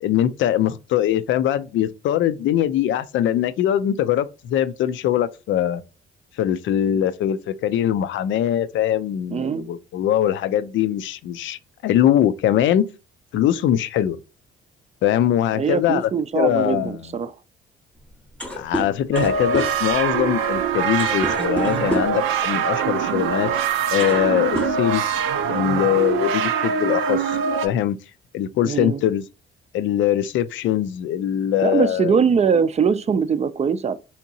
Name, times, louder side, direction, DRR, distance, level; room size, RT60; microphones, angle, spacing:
voice 1, 0.0-5.8 6.4-12.9 13.3-14.2 15.0-16.1 16.3-17.0 18.6-23.5 23.9-25.0 25.5-27.4 27.6-28.0 28.3-29.2 29.7-32.1, left 11 dB, 75° left, 0.4 m, -22 dB
voice 2, 9.3-9.7 15.5-17.3 28.6-29.0 31.6-34.0, right 6 dB, 35° right, 0.4 m, -21 dB
sound 1, 18.0-18.1 18.3-22.3 23.3-23.4 23.8-24.3 24.5-25.4, equal, 5° left, 0.8 m, -29 dB
sound 2, 19.1-27.7, right 7 dB, 90° right, 0.5 m, -23 dB
3.5 x 2.9 x 2.7 m
cardioid pair, 90°, 20 cm